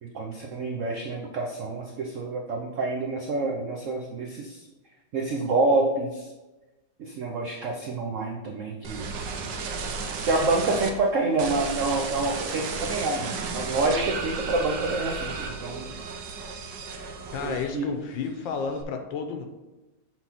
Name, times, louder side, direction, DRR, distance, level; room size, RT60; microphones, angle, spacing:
voice 1, 0.0-4.7 5.1-6.3 7.0-9.1 10.2-15.9 17.4-17.8, right 2 dB, 85° right, 1 dB, 0.6 m, -27 dB
sound 1, 8.8-10.9 11.4-17.9 18.2-18.8, right 5 dB, 65° right, 1.2 m, -34 dB
voice 2, 17.3-19.5, left 5 dB, 75° left, 6 dB, 1.3 m, -31 dB
7.3 x 4.0 x 4.3 m, 1.1 s
omnidirectional pair, 2.2 m